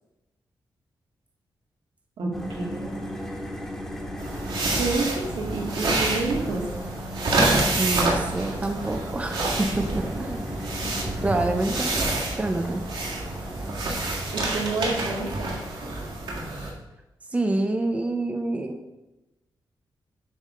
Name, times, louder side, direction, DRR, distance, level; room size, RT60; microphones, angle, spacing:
voice 1, 2.2-2.9 4.8-6.6 14.3-15.5, right 3 dB, 90° right, -2 dB, 2.1 m, -29 dB
sound 1, 2.3-14.5, equal, 5° left, 1.2 m, -37 dB
sound 2, 4.2-16.7, right 2 dB, 70° right, 1.8 m, -28 dB
voice 2, 7.4-10.5 11.2-12.1 12.4-12.8 17.3-18.8, right 2 dB, 15° right, 5 dB, 0.6 m, -27 dB
8.4 x 3.5 x 6.5 m, 0.96 s
wide cardioid pair, 160°, 8 cm